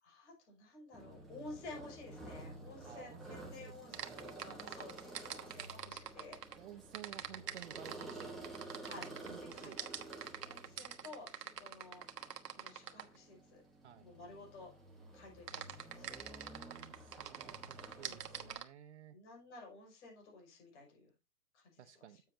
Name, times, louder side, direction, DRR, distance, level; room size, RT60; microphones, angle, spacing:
voice 1, 0.0-6.4 8.8-9.9 10.4-12.0 12.5-13.6 14.0-14.7 15.1-16.1 18.0-18.3 19.1-21.0 21.5-21.8, left 3 dB, 45° left, 1 dB, 6.0 m, -53 dB
sound 1, 0.9-18.6, right 2 dB, ahead, 1.1 m, -52 dB
voice 2, 2.8-4.5 6.5-8.6 8.9-9.8 13.8-14.1 16.6-19.2 21.8-22.2, right 11 dB, 45° right, 12 dB, 0.7 m, -55 dB
sound 2, 3.9-6.6 6.9-13.2 15.5-18.6, right 9 dB, 85° right, 1.3 m, -45 dB
8.9 x 7.5 x 2.8 m, 0.27 s
hypercardioid pair, 160°, 47 cm